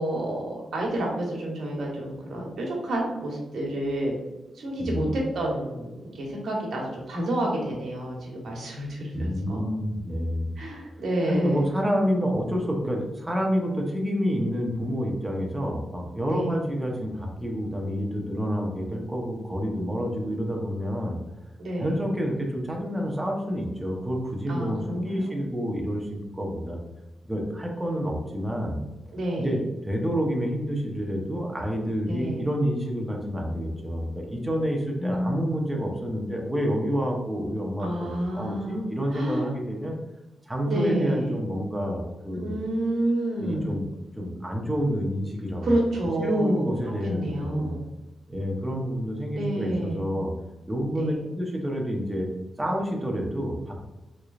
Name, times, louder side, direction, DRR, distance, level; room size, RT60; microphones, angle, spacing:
voice 1, 0.0-4.1 4.5-9.7 10.6-11.6 16.3-16.6 21.6-22.0 24.5-25.4 29.1-29.6 32.1-32.5 35.0-35.4 37.8-38.8 39.1-39.5 40.7-41.3 42.3-43.8 45.6-46.7 47.0-47.8 49.3-50.1 50.9-51.3, right 1 dB, 75° right, -2 dB, 1.2 m, -29 dB
voice 2, 4.8-5.1 9.1-10.5 11.3-21.2 21.8-26.8 27.3-28.8 29.4-39.9 40.5-42.6 43.3-43.8 44.2-45.8 46.2-47.7 48.3-50.3 50.7-52.3 52.6-53.8, equal, 10° right, 0 dB, 0.8 m, -28 dB
3.7 x 3.2 x 2.4 m, 1.0 s
cardioid pair, 110°, 0 cm